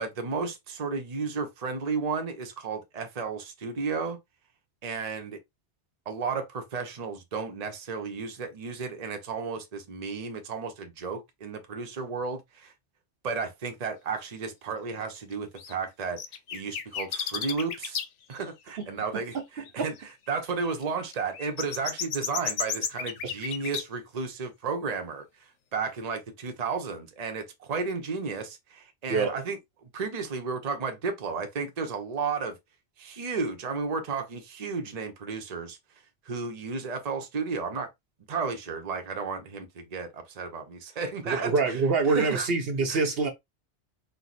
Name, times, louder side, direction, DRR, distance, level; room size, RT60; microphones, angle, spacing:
voice 1, 0.0-4.2 4.8-5.4 6.1-12.7 13.2-16.2 16.5-18.0 18.3-19.9 20.3-25.2 25.7-32.6 33.0-35.8 36.3-37.9 38.3-41.8 42.1-42.5 42.9-43.0, right 4 dB, 40° right, 0.8 m, -33 dB
sound 1, 15.6-15.7 16.2-18.0 18.4-18.5 19.0-19.1 19.3-19.4 19.7-19.9 20.8-23.8, left 8 dB, 85° left, 1.0 m, -32 dB
voice 2, 41.2-43.3, right 4 dB, 60° right, 1.0 m, -25 dB
4.6 x 2.3 x 4.0 m
omnidirectional pair, 1.2 m